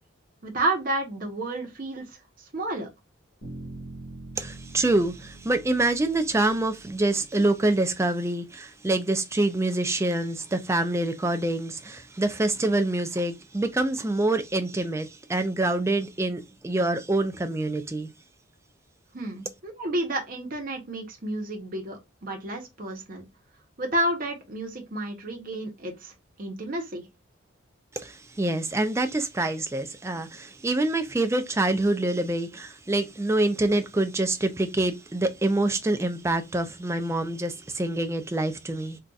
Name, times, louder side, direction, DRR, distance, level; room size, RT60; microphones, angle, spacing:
voice 1, 0.4-2.0 2.4-2.9 19.1-23.3 23.8-27.1, right 1 dB, 45° right, 0.8 m, -31 dB
sound 1, 3.4-7.4, right 2 dB, 65° left, 1.5 m, -44 dB
voice 2, 4.4-18.1 27.9-39.0, right 2 dB, 15° right, 0.3 m, -26 dB
3.9 x 2.3 x 2.3 m
head